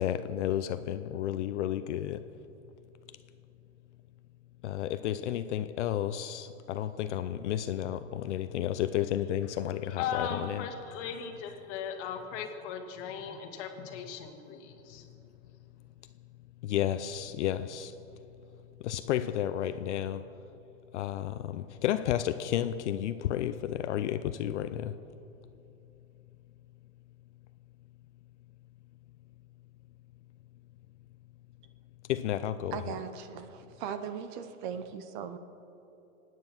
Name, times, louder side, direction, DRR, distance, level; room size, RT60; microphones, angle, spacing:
voice 1, 0.0-2.3 4.6-10.7 15.2-15.3 16.2-16.3 16.6-20.4 20.9-25.0 32.0-32.8, left 11 dB, 60° left, 0.7 m, -32 dB
voice 2, 10.0-15.1, left 7 dB, 35° left, 1.9 m, -38 dB
voice 3, 32.7-35.4, right 7 dB, 40° right, 0.9 m, -39 dB
24.0 x 9.5 x 6.0 m
hypercardioid pair, 145°, 40 cm